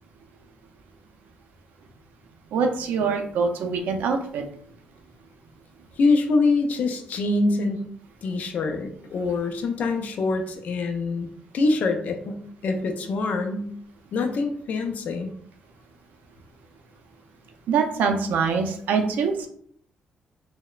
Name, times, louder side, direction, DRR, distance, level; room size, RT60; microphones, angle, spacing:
voice 1, 2.5-4.4 17.7-19.5, right 5 dB, 85° right, 4 dB, 0.4 m, -24 dB
voice 2, 6.0-7.8 8.2-11.3 11.5-13.7 14.1-15.3, left 3 dB, 60° left, 5 dB, 0.4 m, -24 dB
2.9 x 2.0 x 2.3 m, 0.63 s
cardioid pair, 120°, 3 cm